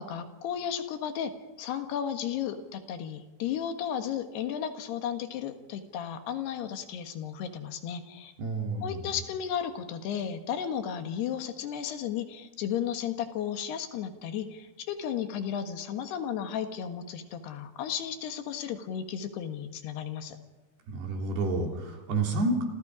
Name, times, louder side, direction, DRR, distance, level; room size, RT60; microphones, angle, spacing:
voice 1, 0.0-8.3 8.8-20.4, left 8 dB, 75° left, 7 dB, 3.5 m, -34 dB
voice 2, 8.4-9.1 20.9-22.6, right 2 dB, 70° right, 1 dB, 5.5 m, -29 dB
29.5 x 27.0 x 5.1 m, 1.1 s
omnidirectional pair, 4.8 m